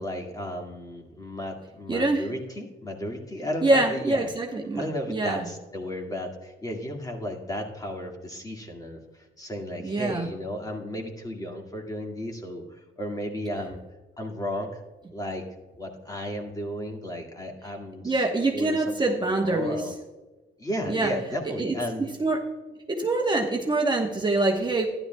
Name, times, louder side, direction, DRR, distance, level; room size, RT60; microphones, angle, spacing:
voice 1, 0.0-4.3 4.7-13.8 14.2-14.8 15.1-15.5 15.8-18.2 18.5-18.9 19.2-19.9 20.6-22.1, equal, 20° left, 1 dB, 2.0 m, -34 dB
voice 2, 1.9-2.2 3.6-4.8 5.1-5.4 9.8-10.3 18.0-19.8 20.9-21.1 21.4-21.7 22.2-22.4 22.7-24.9, right 2 dB, 20° right, 0 dB, 1.2 m, -25 dB
13.0 x 11.0 x 2.3 m, 1.2 s
cardioid pair, 90°, 20 cm